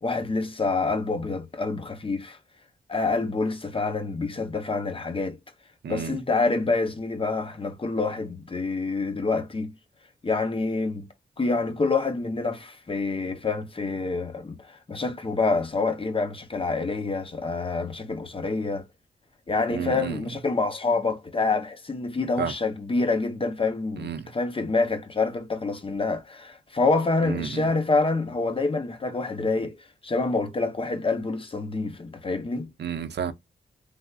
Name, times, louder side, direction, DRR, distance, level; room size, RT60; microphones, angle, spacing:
voice 1, 0.0-2.4 2.9-5.4 5.9-9.7 10.2-11.1 11.4-18.8 19.5-29.8 30.0-32.7, left 3 dB, 30° left, 0.7 m, -27 dB
voice 2, 5.8-6.2 19.7-20.2 22.4-22.5 24.0-24.3 27.2-27.7 32.8-33.3, right 7 dB, 65° right, 0.5 m, -31 dB
3.3 x 2.5 x 2.3 m
wide cardioid pair, 95°, 19 cm